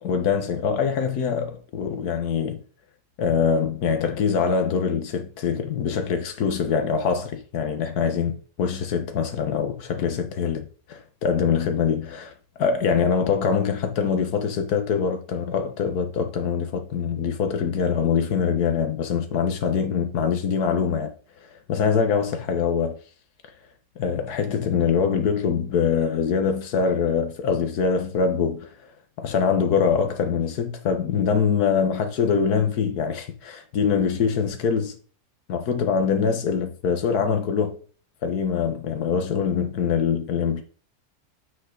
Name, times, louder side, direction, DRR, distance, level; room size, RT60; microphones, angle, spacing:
voice 1, 0.0-2.6 3.2-10.7 11.2-12.3 12.6-21.1 21.5-23.0 24.0-28.7 29.2-35.0 35.5-37.8 38.2-40.6, left 6 dB, 70° left, 1.7 m, -24 dB
7.4 x 6.4 x 3.9 m
omnidirectional pair, 1.7 m